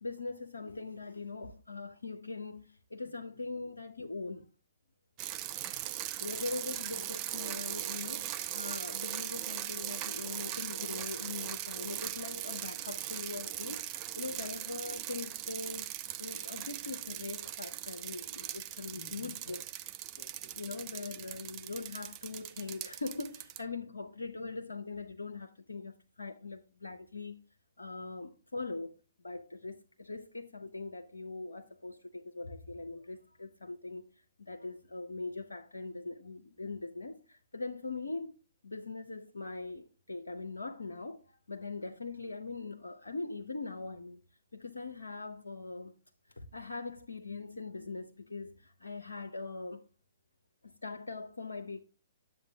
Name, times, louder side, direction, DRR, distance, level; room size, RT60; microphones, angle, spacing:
voice 1, 0.0-4.4 6.2-15.9 16.2-19.6 20.6-27.3 27.8-28.9 29.2-34.1 34.4-38.4 38.6-44.2 44.5-45.9 46.4-49.8 50.6-51.8, left 3 dB, 80° left, 0.7 m, -41 dB
voice 2, 3.0-3.6 5.6-6.0 6.3-6.7 18.9-19.6 20.1-21.6 23.8-23.9 28.0-28.2 29.6-29.7, left 5 dB, 50° left, 1.5 m, -59 dB
sound 1, 5.2-23.6, right 13 dB, 30° right, 0.6 m, -39 dB
10.5 x 7.5 x 2.3 m
figure-of-eight pair, 125°, 0 cm